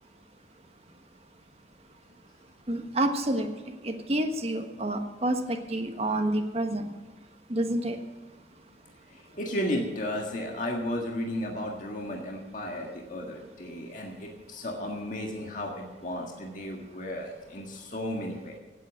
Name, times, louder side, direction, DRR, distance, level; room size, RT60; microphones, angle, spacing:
voice 1, 2.7-3.5 3.8-6.9 7.5-8.0, right 1 dB, 35° right, 5 dB, 1.3 m, -28 dB
voice 2, 9.1-18.6, left 1 dB, 45° left, 0 dB, 1.7 m, -34 dB
17.0 x 8.5 x 6.3 m, 1.3 s
head